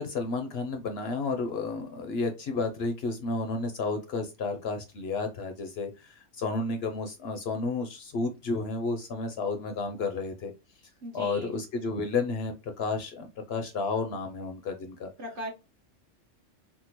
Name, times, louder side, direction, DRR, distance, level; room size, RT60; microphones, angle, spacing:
voice 1, 0.0-10.5 11.1-15.1, left 3 dB, 65° left, 0.7 m, -32 dB
voice 2, 11.0-11.5 15.2-15.5, equal, 50° right, 0.9 m, -38 dB
3.6 x 2.1 x 2.9 m
omnidirectional pair, 1.3 m